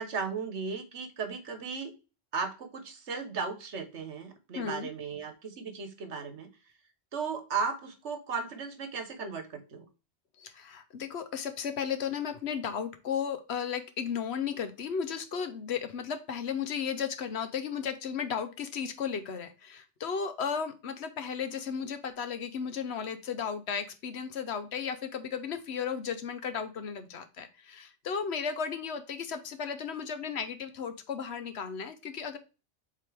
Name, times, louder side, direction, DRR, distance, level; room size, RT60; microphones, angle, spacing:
voice 1, 0.0-1.9 2.3-6.5 7.1-9.8, right 5 dB, 80° right, 8 dB, 1.5 m, -36 dB
voice 2, 4.6-4.9 10.4-32.4, left 7 dB, 70° left, 10 dB, 1.1 m, -34 dB
7.5 x 3.8 x 3.3 m, 0.31 s
omnidirectional pair, 1.2 m